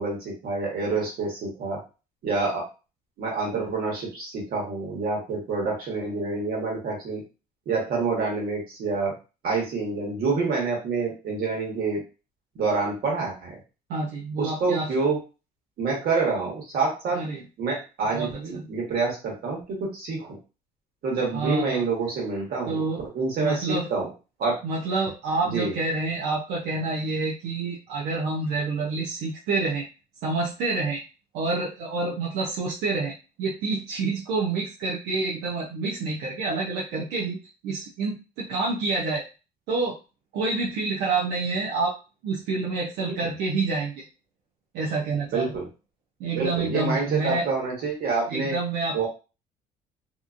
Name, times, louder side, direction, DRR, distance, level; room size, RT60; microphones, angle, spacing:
voice 1, 0.0-1.8 2.2-2.6 3.2-7.2 7.6-9.1 9.4-12.0 12.5-13.5 14.4-15.2 15.8-17.2 17.6-20.4 21.0-22.9 23.1-24.1 24.4-24.6 25.5-25.7 43.0-43.1 45.3-45.7 46.3-48.6 48.9-49.1, right 4 dB, 65° right, -2 dB, 1.5 m, -27 dB
voice 2, 13.9-14.9 17.1-17.4 18.1-18.7 21.2-21.8 22.7-23.0 23.4-23.9 24.6-29.9 30.2-31.0 31.3-37.4 37.6-39.2 39.7-40.0 40.3-41.9 42.2-44.0 44.7-45.6 46.2-47.5 48.3-49.1, right 3 dB, 85° right, -3 dB, 0.7 m, -28 dB
2.9 x 2.4 x 2.5 m, 0.31 s
cardioid pair, 110°, 17 cm